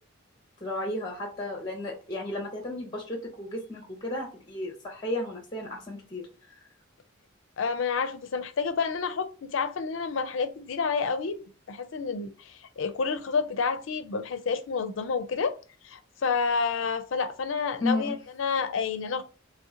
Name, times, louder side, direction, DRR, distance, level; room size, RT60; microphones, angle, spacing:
voice 1, 0.6-6.5 17.8-18.1, left 2 dB, 20° left, 0.7 m, -33 dB
voice 2, 7.6-15.6 15.8-19.2, left 5 dB, 65° left, 0.4 m, -29 dB
3.1 x 2.8 x 3.7 m
head